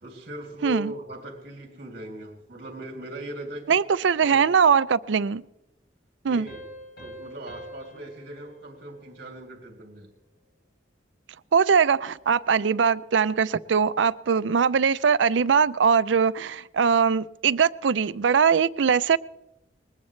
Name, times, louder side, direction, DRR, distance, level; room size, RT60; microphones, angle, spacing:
voice 1, 0.0-3.8 4.2-4.4 6.2-6.6 7.0-10.1, right 1 dB, 55° right, 2.7 m, -39 dB
voice 2, 3.7-5.4 6.2-6.5 11.5-19.2, right 6 dB, 85° right, 0.5 m, -21 dB
Piano, 6.5-9.8, equal, 60° left, 5.3 m, -46 dB
21.0 x 19.5 x 3.2 m
head